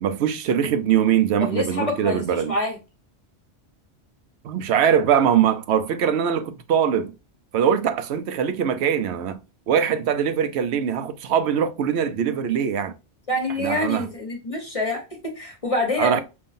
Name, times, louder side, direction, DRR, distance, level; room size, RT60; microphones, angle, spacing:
voice 1, 0.0-2.5 4.4-7.1 7.5-9.4 9.7-12.9 13.6-14.1 16.0-16.2, right 8 dB, 80° right, 0.9 m, -22 dB
voice 2, 1.4-2.8 13.3-16.2, left 2 dB, 35° left, 1.1 m, -26 dB
5.4 x 2.7 x 2.5 m
omnidirectional pair, 1.1 m